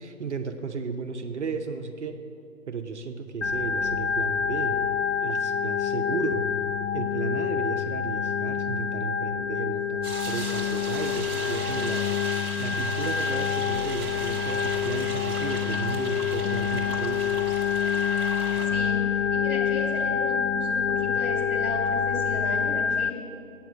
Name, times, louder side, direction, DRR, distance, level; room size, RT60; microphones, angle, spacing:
voice 1, 0.0-2.2 2.7-4.8 5.2-6.5 6.9-12.1 12.6-17.4, right 5 dB, 55° right, 4 dB, 0.7 m, -34 dB
Organ, 3.4-23.1, left 7 dB, 55° left, 0.5 m, -27 dB
sound 1, 10.0-18.7, right 3 dB, 15° right, 0.9 m, -37 dB
voice 2, 18.7-23.1, left 2 dB, 30° left, -3 dB, 2.3 m, -35 dB
8.5 x 7.1 x 8.0 m, 2.6 s
figure-of-eight pair, 155°, 43 cm